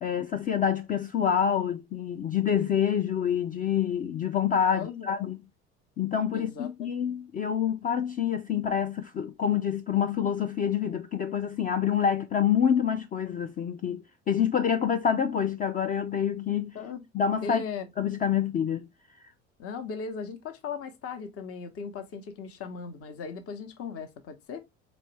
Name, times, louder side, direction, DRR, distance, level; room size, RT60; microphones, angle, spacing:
voice 1, 0.0-5.4 6.0-16.7 17.1-17.6 18.0-18.9, left 8 dB, 25° left, 0.3 m, -27 dB
voice 2, 4.7-5.3 6.3-6.7 7.1-7.2 16.7-17.0 17.4-17.9 19.6-24.6, left 5 dB, 40° left, 0.9 m, -38 dB
4.2 x 3.0 x 3.1 m
hypercardioid pair, 65°, 36 cm